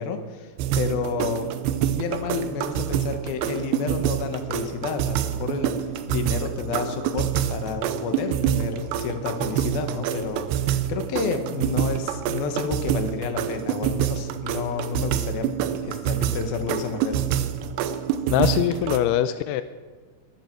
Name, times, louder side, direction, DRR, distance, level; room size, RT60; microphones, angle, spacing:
voice 1, 0.0-1.5 1.9-5.7 6.1-15.5 15.8-17.3, left 5 dB, 65° left, 7 dB, 2.8 m, -30 dB
sound 1, 0.6-19.0, right 10 dB, 80° right, 2.8 m, -27 dB
voice 2, 18.3-19.6, left 11 dB, 85° left, 11 dB, 2.3 m, -22 dB
22.0 x 12.5 x 4.6 m, 1.4 s
omnidirectional pair, 5.2 m